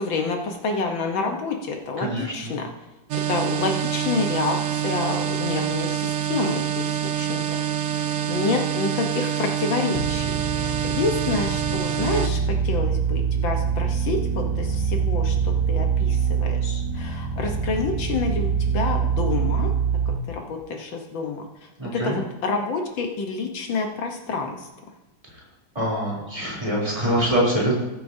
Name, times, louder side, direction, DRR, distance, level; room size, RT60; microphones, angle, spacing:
voice 1, 0.0-2.7 3.3-7.6 8.3-10.3 10.6-19.7 20.3-21.5 21.9-24.7, left 4 dB, 75° left, 2 dB, 1.8 m, -28 dB
voice 2, 2.0-2.6 21.8-22.2 25.7-27.8, right 1 dB, 15° right, -5 dB, 3.3 m, -24 dB
sound 1, 3.1-12.3, right 9 dB, 85° right, 0.7 m, -26 dB
sound 2, 9.9-20.2, right 6 dB, 40° right, 0.4 m, -24 dB
20.0 x 8.3 x 2.7 m, 0.99 s
omnidirectional pair, 2.2 m